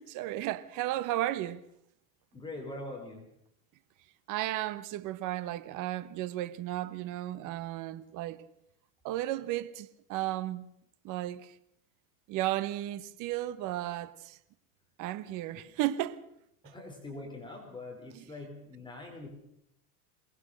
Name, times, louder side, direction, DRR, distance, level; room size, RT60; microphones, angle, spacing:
voice 1, 0.0-1.6 4.3-8.4 9.0-10.7 11.0-11.5 12.3-14.4 15.0-16.2 16.6-16.7, right 14 dB, 45° right, 1.1 m, -34 dB
voice 2, 2.3-3.3 16.6-19.3, left 2 dB, 10° left, 4.2 m, -43 dB
23.0 x 19.5 x 6.5 m
supercardioid pair, 145°, 44 cm